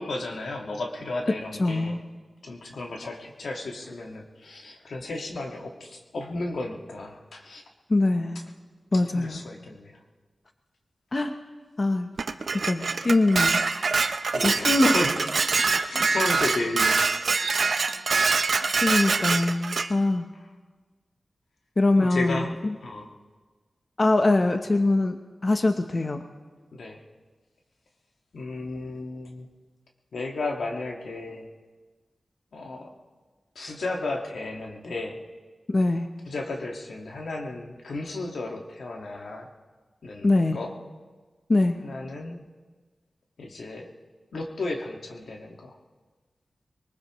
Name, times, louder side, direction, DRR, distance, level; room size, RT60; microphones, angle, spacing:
voice 1, 0.0-2.0 2.4-7.6 9.1-10.0 14.3-17.1 22.0-23.1 26.7-27.0 28.3-29.5 30.1-31.5 32.5-32.9 33.6-35.2 36.3-39.5 40.0-40.7 41.8-42.4 43.4-43.9 44.3-45.7, left 2 dB, 85° left, 1 dB, 1.7 m, -34 dB
voice 2, 1.6-2.0 7.9-8.4 8.9-9.4 11.1-11.4 11.8-12.1 12.7-13.6 14.4-15.0 18.8-20.3 21.8-22.8 24.0-25.2 25.4-26.2 35.7-36.1 40.2-40.6 41.5-41.8, left 2 dB, 40° left, 6 dB, 0.8 m, -23 dB
Dishes pots and pans, 12.2-19.9, right 4 dB, 70° right, 0.7 m, -24 dB
23.0 x 20.0 x 3.1 m, 1.4 s
wide cardioid pair, 80°, 0 cm